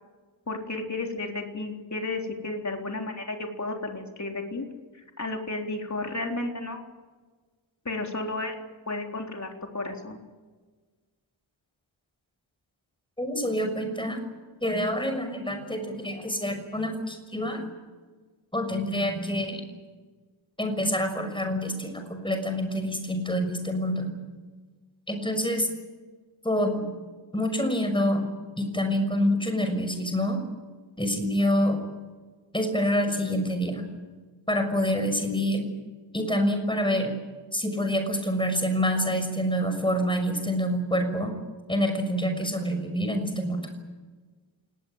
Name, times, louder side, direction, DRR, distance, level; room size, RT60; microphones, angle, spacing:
voice 1, 0.5-4.7 5.2-6.8 7.9-8.5 8.9-9.5 9.7-10.2, left 2 dB, 35° left, 2 dB, 3.9 m, -32 dB
voice 2, 13.2-14.2 14.6-17.7 18.5-19.6 20.6-24.1 25.1-25.7 26.4-26.8 27.3-28.3 28.6-30.4 31.0-31.8 32.5-33.8 34.5-35.7 36.1-37.1 37.5-41.3 41.7-43.6, equal, 10° left, 6 dB, 6.2 m, -27 dB
28.0 x 19.5 x 8.2 m, 1.4 s
wide cardioid pair, 100°, 46 cm